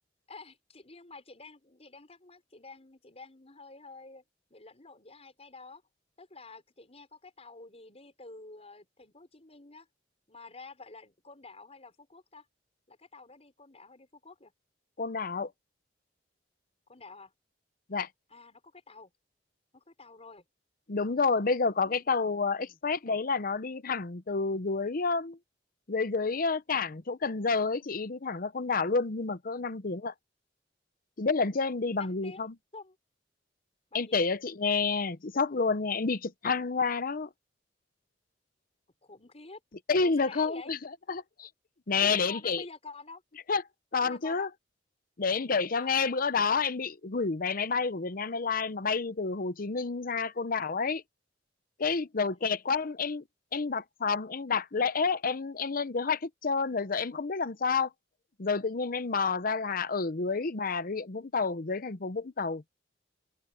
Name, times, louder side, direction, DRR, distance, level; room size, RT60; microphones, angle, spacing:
voice 1, 0.3-4.2 4.5-5.8 6.2-9.9 10.3-12.5 12.9-14.5 16.9-17.3 18.3-19.1 19.7-20.4 21.8-22.0 22.6-22.8 32.0-32.4 32.7-33.0 33.9-34.2 39.0-39.6 40.0-40.7 42.0-43.2 44.0-44.5 45.7-46.0 52.3-52.5, left 3 dB, 35° left, 5.3 m, -49 dB
voice 2, 15.0-15.5 17.9-18.1 20.9-25.4 25.9-30.1 31.2-32.5 33.9-37.3 39.9-40.8 41.1-41.5 41.9-42.6 43.5-43.6 43.9-44.5 45.2-51.0 51.8-53.2 53.5-57.9 58.4-62.6, left 4 dB, 50° left, 0.8 m, -29 dB
open air
head